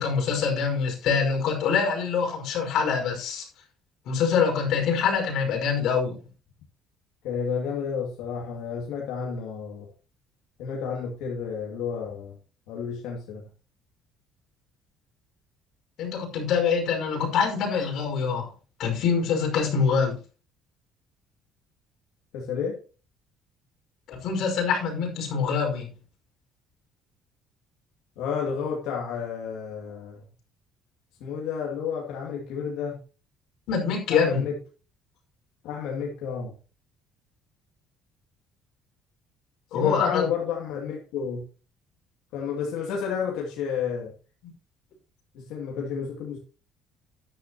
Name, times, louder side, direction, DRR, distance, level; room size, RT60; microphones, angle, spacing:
voice 1, 0.0-3.5 4.1-6.2 16.0-18.5 18.8-20.2 24.1-25.9 33.7-34.4 39.7-40.2 44.4-44.5, left 6 dB, 55° left, 1 dB, 5.2 m, -25 dB
voice 2, 7.2-9.9 10.6-12.4 12.7-13.4 22.3-22.8 28.2-30.2 31.2-33.0 34.1-34.6 35.6-36.5 39.7-41.4 42.3-44.1 45.3-46.4, left 6 dB, 80° left, -2 dB, 2.5 m, -31 dB
13.5 x 10.5 x 3.0 m, 0.35 s
cardioid pair, 170°, 0 cm